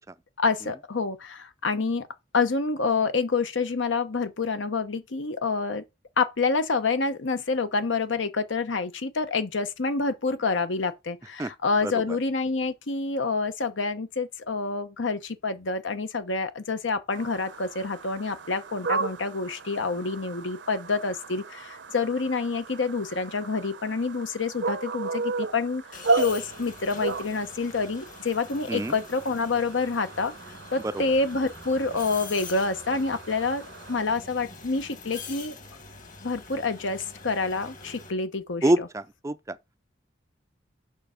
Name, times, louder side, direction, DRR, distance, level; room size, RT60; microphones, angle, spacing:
voice 1, 0.4-2.1 2.3-5.8 6.2-30.3 30.7-33.6 33.9-35.5 36.2-38.9, left 4 dB, 85° left, 1.0 m, -27 dB
sound 1, 17.1-34.0, right 4 dB, 70° right, 0.7 m, -35 dB
sound 2, 25.9-38.1, left 3 dB, 45° left, 1.6 m, -44 dB
voice 2, 38.6-39.6, right 1 dB, 15° right, 0.4 m, -25 dB
6.7 x 5.3 x 5.1 m
head